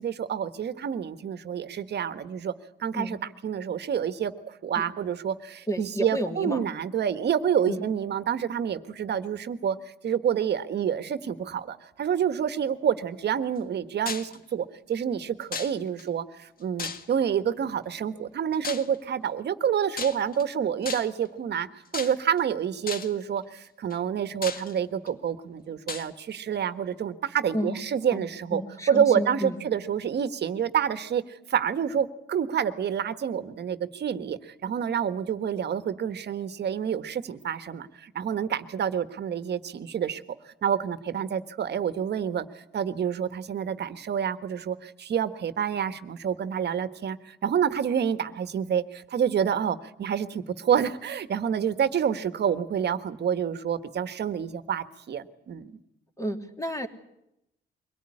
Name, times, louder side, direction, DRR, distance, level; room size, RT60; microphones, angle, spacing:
voice 1, 0.0-2.5 2.8-3.2 3.4-9.8 10.0-21.7 21.9-28.6 28.9-40.2 40.5-55.7, right 8 dB, 55° right, 11 dB, 1.5 m, -28 dB
voice 2, 5.7-6.6 7.7-7.8 27.5-27.8 28.1-29.6 56.2-56.9, equal, 15° left, 5 dB, 3.1 m, -31 dB
sound 1, 14.1-14.4 15.5-16.0 16.8-17.3 18.6-19.0 19.9-20.4 20.8-21.3 21.9-22.4 22.9-23.2 23.9-24.0 24.4-25.1 25.9-26.1, left 5 dB, 45° left, 2.0 m, -35 dB
23.5 x 17.5 x 9.9 m, 0.83 s
cardioid pair, 90°, 20 cm